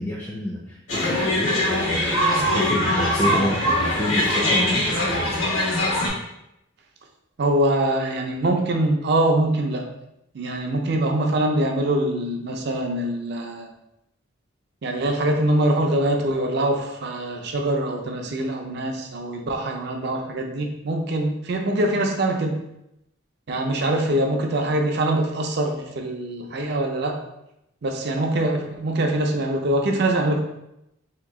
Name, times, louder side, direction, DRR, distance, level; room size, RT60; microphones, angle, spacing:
voice 1, 0.0-5.3, equal, 15° left, -3 dB, 0.4 m, -28 dB
sound 1, 0.9-6.1, left 1 dB, 80° left, 1.1 m, -22 dB
voice 2, 7.4-9.9 10.3-13.7 14.8-22.6 23.5-27.2 27.8-30.4, right 1 dB, 55° right, 3 dB, 0.5 m, -23 dB
2.9 x 2.6 x 3.6 m, 0.84 s
head